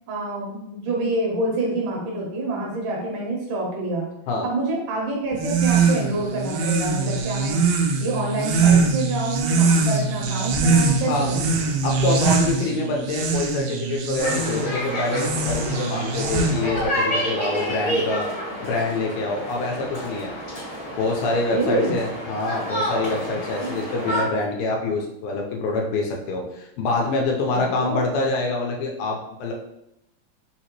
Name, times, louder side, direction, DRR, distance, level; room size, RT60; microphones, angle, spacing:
voice 1, 0.1-4.1 4.4-7.6 8.0-11.5 21.5-22.0 23.6-23.8 27.5-28.0, right 2 dB, 70° right, -2 dB, 2.2 m, -27 dB
sound 1, 5.3-16.9, right 4 dB, 85° right, 2.4 m, -22 dB
voice 2, 11.8-18.3 18.6-20.3 21.0-29.5, left 3 dB, 85° left, 0 dB, 2.5 m, -26 dB
sound 2, 14.2-24.2, equal, 45° left, 0.9 m, -29 dB
5.8 x 2.9 x 3.0 m, 0.80 s
omnidirectional pair, 4.1 m